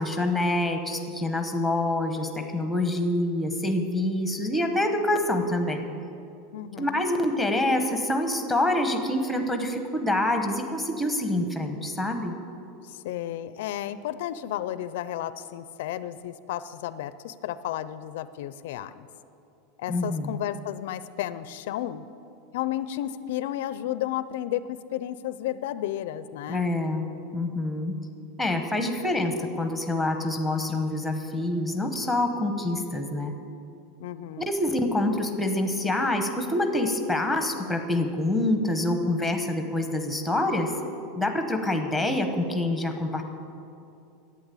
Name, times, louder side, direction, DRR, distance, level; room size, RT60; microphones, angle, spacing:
voice 1, 0.0-5.8 6.8-12.3 19.9-20.4 26.5-27.0 27.3-28.0 28.4-33.3 34.5-40.7 41.2-43.2, left 1 dB, ahead, 5 dB, 0.9 m, -26 dB
voice 2, 6.5-7.0 12.8-19.1 19.8-22.1 22.5-26.7 34.0-34.5, left 12 dB, 65° left, 14 dB, 0.4 m, -33 dB
11.0 x 8.7 x 8.3 m, 2.6 s
supercardioid pair, 175°, 0 cm